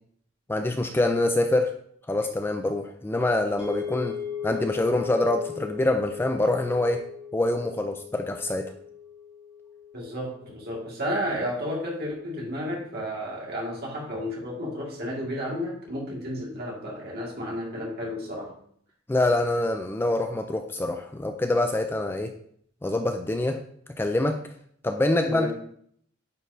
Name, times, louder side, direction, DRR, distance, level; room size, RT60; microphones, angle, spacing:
voice 1, 0.5-1.7 2.1-4.2 4.4-7.0 7.3-8.7 19.1-22.3 22.8-23.6 24.0-24.4 24.8-25.5, left 2 dB, 10° left, 5 dB, 0.3 m, -25 dB
sound 1, 3.6-11.9, left 7 dB, 5° right, 1.3 m, -38 dB
voice 2, 9.9-18.5 25.3-25.5, equal, 50° right, -3 dB, 1.9 m, -32 dB
9.0 x 4.4 x 2.6 m, 0.64 s
head